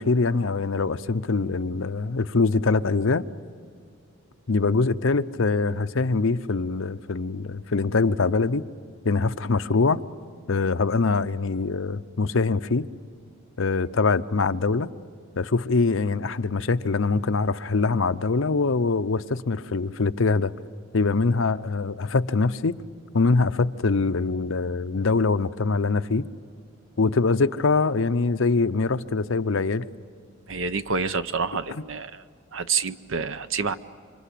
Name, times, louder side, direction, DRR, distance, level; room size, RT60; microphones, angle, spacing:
voice 1, 0.0-3.2 4.5-8.6 9.0-10.0 10.5-12.8 13.6-14.9 15.4-20.5 20.9-22.8 23.1-26.2 27.0-29.8 31.7-31.8, left 4 dB, 65° left, 0.7 m, -23 dB
voice 2, 30.5-32.2 32.5-33.7, right 5 dB, 65° right, 0.8 m, -28 dB
27.5 x 25.5 x 8.4 m
head